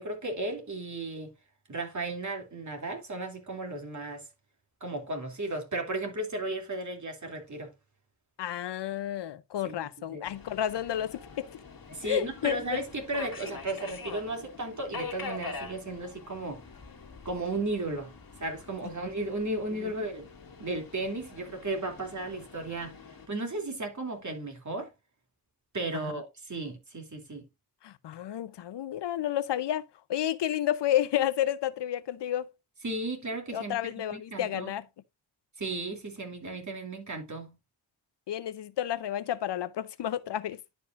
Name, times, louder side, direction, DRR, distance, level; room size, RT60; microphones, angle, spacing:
voice 1, 0.0-1.3 1.7-4.3 4.8-7.7 9.6-9.8 10.1-10.2 11.9-16.6 17.2-18.1 18.4-20.3 20.6-23.0 23.3-24.9 25.7-27.5 32.8-33.8 34.1-34.7 35.6-37.5, right 2 dB, 45° right, 2.8 m, -35 dB
voice 2, 8.4-11.5 12.0-12.8 19.8-19.9 27.8-29.8 30.1-32.5 33.5-34.8 38.3-40.6, left 11 dB, 85° left, 0.6 m, -31 dB
Subway metro underground, 10.2-23.3, left 4 dB, 60° left, 1.8 m, -45 dB
11.0 x 5.3 x 2.5 m
cardioid pair, 60°, 40 cm